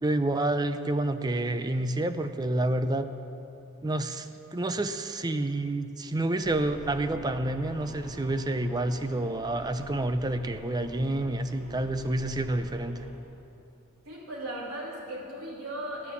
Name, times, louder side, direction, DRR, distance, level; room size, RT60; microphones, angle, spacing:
voice 1, 0.0-3.1 3.8-13.0, right 1 dB, 20° right, 10 dB, 0.4 m, -29 dB
sound 1, 6.4-13.1, right 1 dB, 40° right, 3.1 m, -46 dB
voice 2, 14.0-16.1, right 1 dB, 75° right, -4 dB, 3.2 m, -37 dB
12.0 x 9.6 x 7.0 m, 2.9 s
head